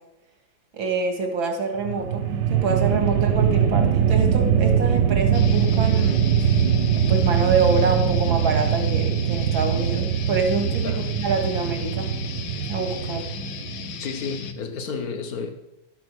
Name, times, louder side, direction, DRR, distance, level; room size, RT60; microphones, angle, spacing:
voice 1, 0.7-6.7 7.1-10.9 11.2-12.1 12.7-13.2, right 4 dB, 85° right, 4 dB, 2.7 m, -26 dB
sound 1, 1.8-14.1, right 8 dB, 65° right, 1.4 m, -22 dB
sound 2, 5.3-14.5, left 7 dB, 75° left, 1.7 m, -36 dB
voice 2, 14.0-15.5, left 5 dB, 50° left, 7 dB, 1.6 m, -31 dB
12.5 x 8.6 x 6.2 m, 0.90 s
omnidirectional pair, 2.1 m